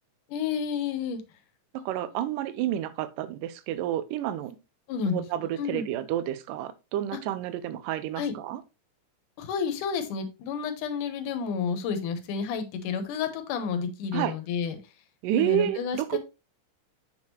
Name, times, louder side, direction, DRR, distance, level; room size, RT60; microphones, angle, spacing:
voice 1, 0.3-1.2 1.8-1.9 4.9-5.2 5.6-5.9 8.2-8.4 9.4-14.8 15.4-16.2, left 6 dB, 75° left, 2.5 m, -30 dB
voice 2, 1.7-4.6 5.1-8.6 14.1-14.3 15.2-16.2, right 12 dB, 80° right, 2.3 m, -30 dB
7.3 x 6.3 x 2.9 m
omnidirectional pair, 3.8 m